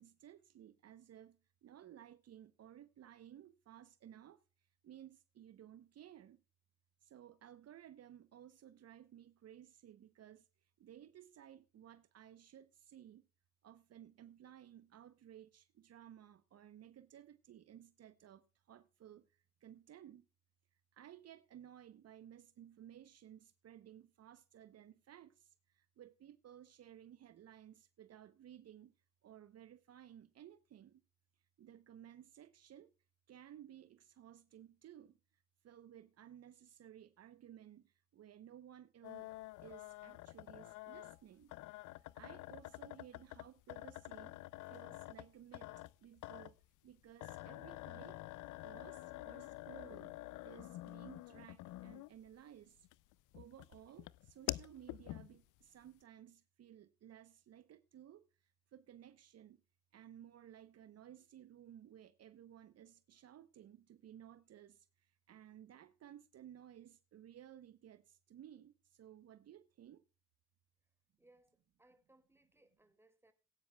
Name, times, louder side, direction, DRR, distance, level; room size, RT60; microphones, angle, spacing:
voice 1, 0.0-6.4 7.0-13.3 13.6-20.3 20.9-28.9 29.2-31.0 31.6-32.9 33.3-39.3 39.6-41.5 41.9-44.4 44.6-46.6 46.8-48.2 48.6-50.2 50.4-52.9 53.3-59.6 59.9-70.0, right 10 dB, 55° right, 0.7 m, -57 dB
sound 1, 39.0-52.3 52.8-55.6, left 18 dB, 85° left, 0.5 m, -48 dB
voice 2, 71.2-73.3, right 2 dB, 10° right, 1.6 m, -69 dB
18.0 x 9.5 x 2.2 m
cardioid pair, 90°, 30 cm